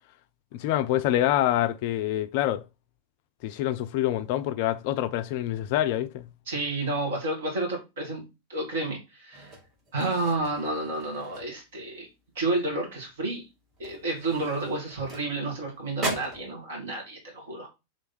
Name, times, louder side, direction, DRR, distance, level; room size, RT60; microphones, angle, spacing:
voice 1, 0.5-2.6 3.4-6.3, left 13 dB, 45° left, 0.3 m, -26 dB
voice 2, 6.5-8.2 8.5-9.5 9.9-12.1 12.3-13.4 13.8-17.7, right 2 dB, 60° right, 1.8 m, -30 dB
sound 1, 9.3-12.0 12.3-12.6 13.0-13.1 13.7-15.6 16.0-16.5, right 2 dB, 30° right, 1.6 m, -38 dB
3.3 x 3.0 x 4.2 m
figure-of-eight pair, 90°, 0 cm